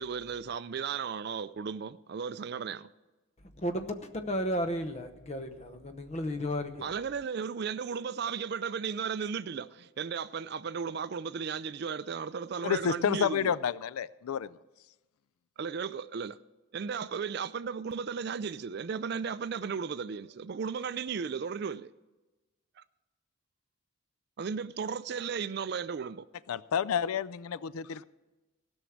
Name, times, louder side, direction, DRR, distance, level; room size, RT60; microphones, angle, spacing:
voice 1, 0.0-2.9 6.8-13.6 15.6-16.4 16.7-21.9 24.4-26.3, right 6 dB, 50° right, 0.4 m, -35 dB
voice 2, 3.6-6.9, equal, 30° left, 0.8 m, -33 dB
voice 3, 12.6-14.5 26.5-28.0, left 7 dB, 85° left, 0.4 m, -30 dB
16.0 x 6.3 x 7.1 m
head